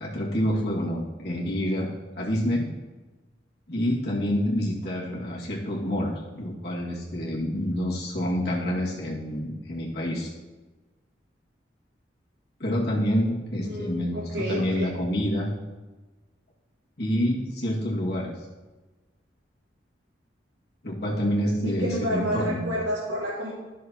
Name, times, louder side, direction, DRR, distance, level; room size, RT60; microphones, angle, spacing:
voice 1, 0.0-2.7 3.7-10.3 12.6-15.5 17.0-18.4 20.8-22.7, equal, 60° left, -5 dB, 2.0 m, -27 dB
voice 2, 13.6-14.9 21.6-23.5, equal, 80° right, -6 dB, 1.8 m, -30 dB
11.5 x 6.5 x 2.9 m, 1.2 s
head